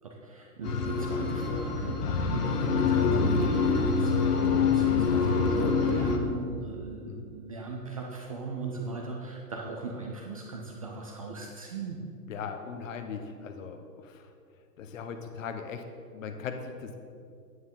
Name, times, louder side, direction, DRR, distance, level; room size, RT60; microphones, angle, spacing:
voice 1, 0.0-12.0, right 3 dB, 25° right, 0 dB, 0.4 m, -38 dB
sound 1, 0.6-6.2, left 5 dB, 70° left, 1.4 m, -25 dB
voice 2, 12.3-14.2 14.8-15.8 16.1-17.0, left 6 dB, 50° left, 6 dB, 1.1 m, -39 dB
9.6 x 9.4 x 3.7 m, 2.4 s
hypercardioid pair, 135°, 49 cm